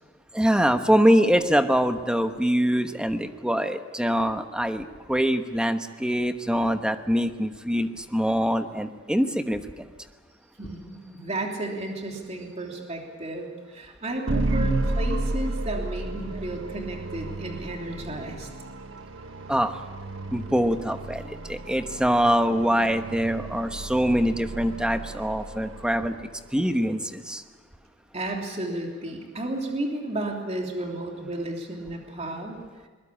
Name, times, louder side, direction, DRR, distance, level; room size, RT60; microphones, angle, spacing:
voice 1, 0.3-9.6 19.5-19.8 20.3-27.4, equal, 5° right, 7 dB, 1.1 m, -24 dB
voice 2, 10.6-18.5 28.1-32.6, right 1 dB, 35° right, 1 dB, 3.2 m, -33 dB
sound 1, 14.3-26.4, right 2 dB, 75° right, 1.6 m, -32 dB
22.0 x 21.5 x 8.7 m, 1.3 s
head